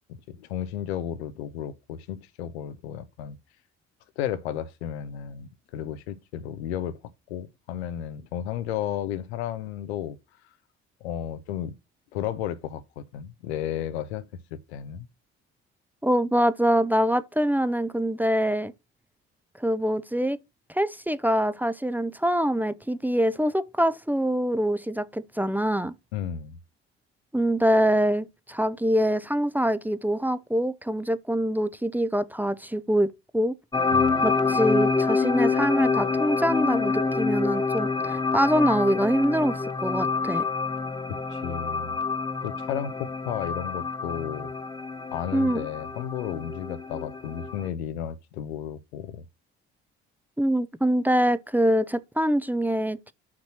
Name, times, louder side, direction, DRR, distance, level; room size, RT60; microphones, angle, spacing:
voice 1, 0.3-3.4 4.2-7.0 7.3-10.2 11.0-11.7 12.1-14.3 14.7-15.1 26.1-26.6 33.9-34.3 41.1-42.0 42.4-44.5 45.1-49.2, left 10 dB, 85° left, 0.8 m, -33 dB
voice 2, 16.0-18.7 19.6-20.4 20.7-25.9 27.3-33.5 34.2-40.5 45.3-45.7 50.4-53.1, equal, 5° right, 0.6 m, -24 dB
sound 1, 33.7-47.7, left 4 dB, 15° left, 1.1 m, -27 dB
6.0 x 4.3 x 6.2 m
hypercardioid pair, 50°, 32 cm